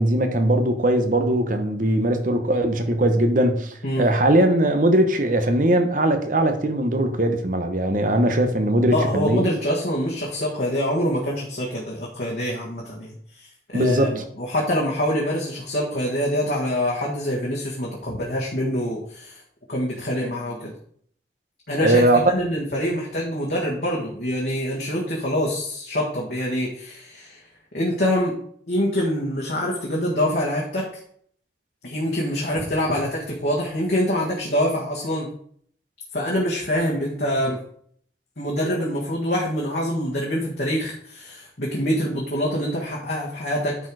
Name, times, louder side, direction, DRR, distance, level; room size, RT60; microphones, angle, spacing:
voice 1, 0.0-9.5 13.7-14.2 21.8-22.2, right 1 dB, 45° right, 1.1 m, -20 dB
voice 2, 8.9-19.4 19.7-20.7 21.7-27.4 27.7-28.3 28.7-30.9 31.8-35.3 36.1-37.6 38.4-43.8, equal, 55° left, 1.7 m, -25 dB
10.5 x 4.6 x 4.8 m
head